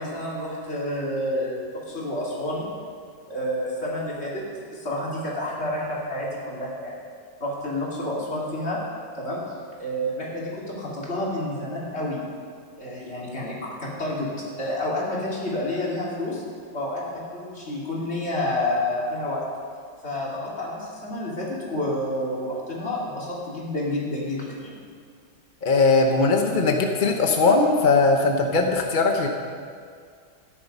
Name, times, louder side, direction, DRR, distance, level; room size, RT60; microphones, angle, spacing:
voice 1, 0.0-2.7 3.3-4.4 4.7-6.9 7.4-8.8 9.1-9.4 9.8-12.2 12.8-14.3 14.6-16.4 16.7-19.4 20.0-24.8, left 1 dB, 30° left, -5 dB, 3.2 m, -29 dB
voice 2, 25.6-29.3, left 3 dB, 50° left, 2 dB, 0.6 m, -20 dB
13.5 x 10.5 x 5.5 m, 2.2 s
omnidirectional pair, 2.2 m